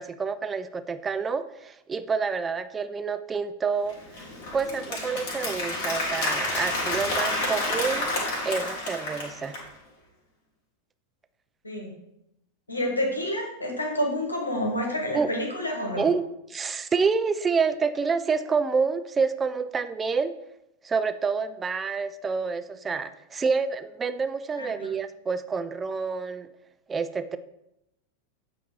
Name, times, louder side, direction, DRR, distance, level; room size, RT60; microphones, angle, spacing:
voice 1, 0.0-4.2 4.5-8.1 8.4-9.6 15.1-15.3 16.0-16.2 16.5-20.3 20.8-26.5 26.9-27.4, right 5 dB, 15° right, 12 dB, 0.4 m, -28 dB
Applause, 3.9-9.7, left 2 dB, 50° left, 1.9 m, -29 dB
voice 2, 12.7-16.0 24.6-24.9, left 1 dB, 80° left, 1 dB, 1.2 m, -29 dB
8.1 x 2.7 x 4.7 m, 0.84 s
figure-of-eight pair, 90°, 0 cm